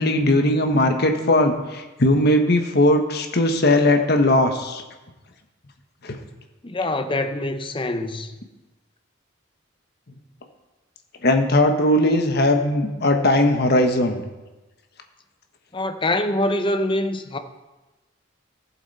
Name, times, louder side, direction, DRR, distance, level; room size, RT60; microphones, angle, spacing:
voice 1, 0.0-4.8 6.0-6.2 11.2-14.2, left 1 dB, 55° left, 1.2 m, -19 dB
voice 2, 6.6-8.4 15.7-17.4, left 1 dB, 25° left, 0.7 m, -24 dB
15.0 x 7.4 x 4.2 m
head